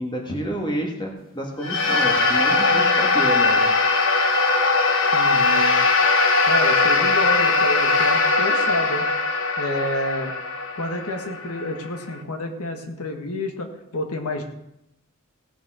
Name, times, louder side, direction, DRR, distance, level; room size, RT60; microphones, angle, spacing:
voice 1, 0.0-3.6, equal, 20° left, 1 dB, 1.8 m, -29 dB
sound 1, 1.6-12.1, left 3 dB, 60° left, 1.2 m, -20 dB
voice 2, 5.1-5.8 6.5-9.1 9.6-10.3 10.7-14.4, left 1 dB, 80° left, 4 dB, 1.5 m, -29 dB
17.0 x 7.0 x 5.0 m, 0.83 s
head